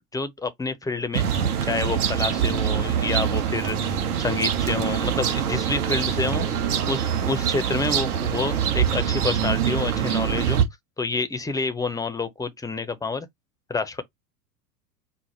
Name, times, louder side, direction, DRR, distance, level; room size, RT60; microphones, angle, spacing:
voice 1, 0.1-1.3 1.6-6.5 6.8-10.6 11.0-13.3 13.7-14.0, left 3 dB, 5° left, 0.7 m, -28 dB
sound 1, 1.1-10.6, right 8 dB, 65° right, 1.4 m, -24 dB
5.0 x 2.1 x 4.2 m
figure-of-eight pair, 85°, 49 cm